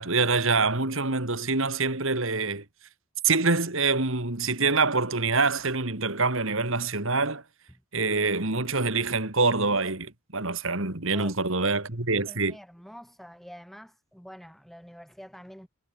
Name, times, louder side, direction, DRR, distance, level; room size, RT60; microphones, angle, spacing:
voice 1, 0.0-2.6 3.2-7.4 7.9-12.6, right 3 dB, 60° right, 2.7 m, -25 dB
voice 2, 11.1-11.8 12.3-15.7, equal, ahead, 7.5 m, -47 dB
head